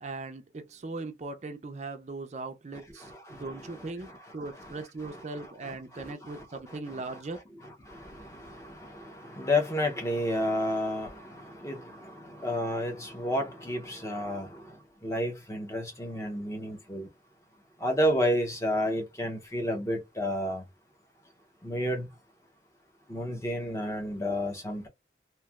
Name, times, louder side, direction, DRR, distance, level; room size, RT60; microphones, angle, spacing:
voice 1, 0.0-7.4, right 3 dB, 40° right, 0.4 m, -39 dB
voice 2, 3.0-7.2 7.6-17.1 17.8-20.7 21.6-22.1 23.1-24.9, left 1 dB, 15° left, 0.6 m, -32 dB
3.0 x 2.5 x 2.3 m
head